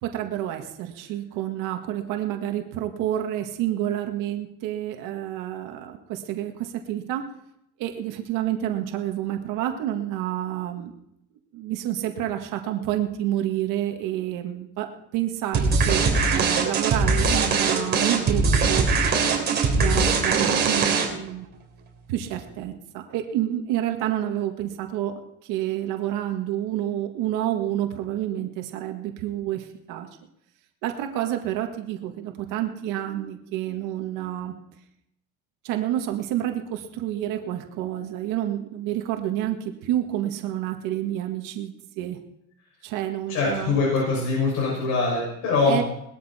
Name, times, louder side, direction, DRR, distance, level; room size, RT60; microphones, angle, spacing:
voice 1, 0.0-7.3 7.8-10.9 11.5-18.9 19.5-21.5 22.1-25.1 25.4-30.1 30.8-34.5 35.6-42.2 42.8-43.7 45.7-45.8, right 12 dB, 75° right, 4 dB, 1.8 m, -29 dB
sound 1, 15.5-21.3, right 4 dB, 30° right, 3.8 m, -21 dB
voice 2, 43.3-45.8, left 4 dB, 60° left, -4 dB, 6.4 m, -23 dB
20.0 x 13.0 x 4.3 m, 0.77 s
cardioid pair, 150°, 32 cm